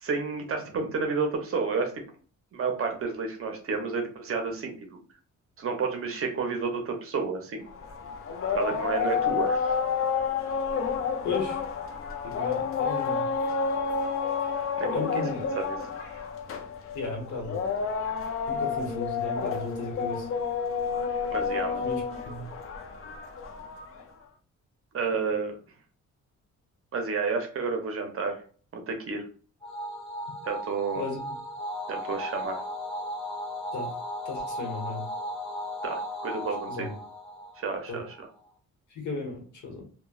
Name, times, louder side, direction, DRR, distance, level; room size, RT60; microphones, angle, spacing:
voice 1, 0.0-2.0 2.5-4.8 5.6-7.6 8.5-9.8 14.8-15.2 15.5-16.1 21.3-21.8 24.9-25.5 26.9-28.4 28.7-29.2 30.5-31.0 31.9-32.6 35.8-36.9 37.6-38.3, right 4 dB, 45° right, 4 dB, 0.6 m, -31 dB
sound 1, 7.7-24.0, left 6 dB, 45° left, 0.4 m, -30 dB
voice 2, 11.2-11.6 12.2-13.2 14.9-15.6 16.9-17.7 18.5-20.3 21.8-22.5 31.0-31.3 33.7-34.0 34.2-35.1 36.7-36.9 37.9-38.0 38.9-39.8, left 3 dB, 70° left, 1 dB, 1.1 m, -35 dB
sound 2, 29.6-38.2, left 1 dB, ahead, 0.6 m, -36 dB
3.0 x 2.1 x 2.3 m, 0.41 s
wide cardioid pair, 160°, 31 cm